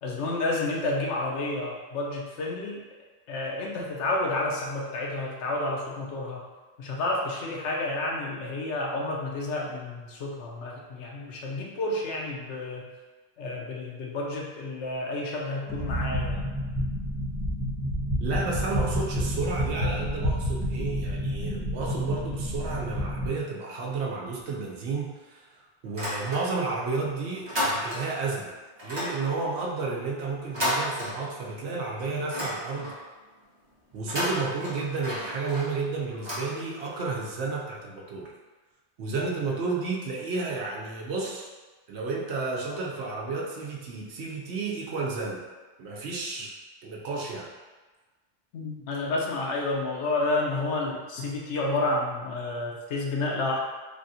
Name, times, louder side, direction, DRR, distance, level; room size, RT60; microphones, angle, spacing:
voice 1, 0.0-2.8 3.3-6.4 6.8-12.9 13.4-16.4 48.5-53.6, left 2 dB, 90° left, -1 dB, 0.9 m, -30 dB
sound 1, 15.7-23.3, equal, 5° left, 0.7 m, -29 dB
voice 2, 18.2-28.5 28.8-32.9 33.9-38.3 39.0-41.5 41.9-45.4 45.8-46.6 46.8-47.5, right 4 dB, 75° right, -2 dB, 0.8 m, -32 dB
sound 2, 25.8-26.8 27.1-28.3 28.8-31.6 32.0-33.1 33.9-37.0, equal, 25° right, 0.9 m, -33 dB
3.4 x 2.5 x 2.6 m, 1.3 s
omnidirectional pair, 1.2 m